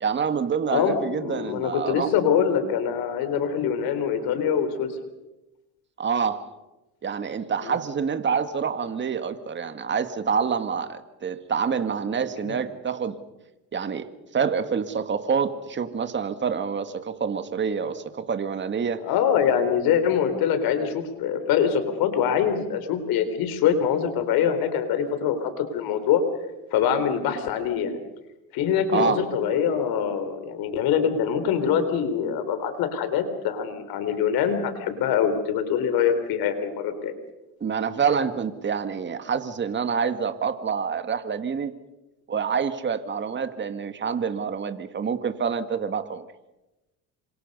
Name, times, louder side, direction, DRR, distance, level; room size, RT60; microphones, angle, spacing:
voice 1, 0.0-2.1 6.0-6.5 7.0-13.2 13.7-19.0 28.9-29.2 37.6-41.7 42.3-46.3, right 6 dB, 30° right, 9 dB, 1.9 m, -27 dB
voice 2, 0.7-4.9 7.6-7.7 12.5-12.6 19.0-26.2 26.7-28.0 28.5-37.1, left 8 dB, 70° left, 9 dB, 3.8 m, -24 dB
28.0 x 25.5 x 5.5 m, 1.0 s
supercardioid pair, 105°, 37 cm